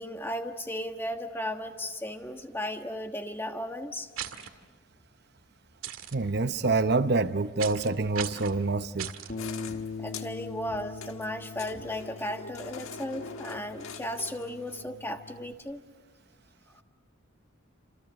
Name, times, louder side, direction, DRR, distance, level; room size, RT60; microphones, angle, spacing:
voice 1, 0.0-4.1 9.7-15.8, left 1 dB, 10° left, 1.4 m, -35 dB
sound 1, 4.2-4.5 5.8-6.1 7.6-7.9 8.1-8.5 9.0-9.3, right 9 dB, 80° right, 1.9 m, -37 dB
voice 2, 6.1-9.1, right 3 dB, 50° right, 0.8 m, -26 dB
Bass guitar, 9.3-15.5, left 4 dB, 50° left, 1.7 m, -42 dB
sound 2, 9.4-14.8, left 5 dB, 85° left, 1.4 m, -44 dB
29.0 x 27.5 x 6.5 m
head